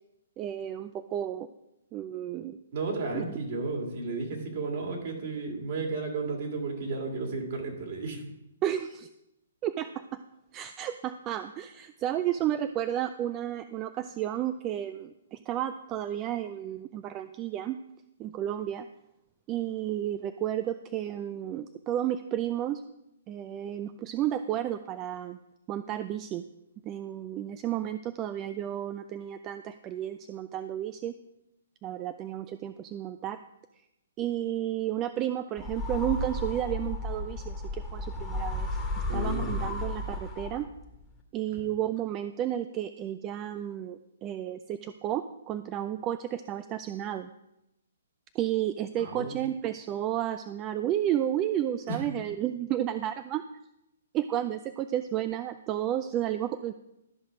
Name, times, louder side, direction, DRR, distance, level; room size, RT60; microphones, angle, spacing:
voice 1, 0.4-1.5 1.9-2.6 3.1-3.4 8.6-9.1 9.6-10.2 10.5-17.8 18.2-18.9 19.5-22.8 23.3-25.4 25.7-26.4 26.9-31.2 31.8-33.4 34.2-38.8 39.1-40.7 41.3-47.3 48.3-53.4 54.1-56.7, right 11 dB, 25° right, 11 dB, 0.4 m, -32 dB
voice 2, 2.7-8.2 39.1-39.5 41.5-41.6 49.0-49.3 51.9-52.0, right 3 dB, 55° right, 1 dB, 2.9 m, -33 dB
sound 1, 35.6-40.9, left 2 dB, 10° left, 1.4 m, -33 dB
12.5 x 5.6 x 4.9 m, 0.87 s
hypercardioid pair, 135°, 0 cm